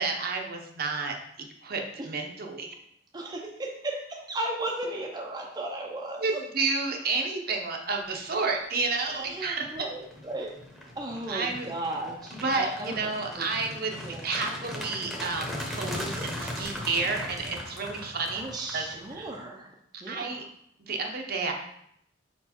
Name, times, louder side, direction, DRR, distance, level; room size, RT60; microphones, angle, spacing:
voice 1, 0.0-2.7 6.2-9.7 11.3-11.7 12.4-18.5 18.7-19.3 20.1-20.4 20.9-21.5, right 4 dB, 50° right, 2 dB, 0.8 m, -31 dB
voice 2, 3.1-6.2 8.9-10.5 11.0-13.1 13.4-13.5 14.0-14.2 15.9-16.1 18.3-19.7 20.0-20.4, right 2 dB, 20° right, -1 dB, 0.6 m, -35 dB
sound 1, 8.5-8.8 9.3-19.4, left 1 dB, ahead, 0.9 m, -39 dB
4.9 x 4.5 x 4.3 m, 0.73 s
head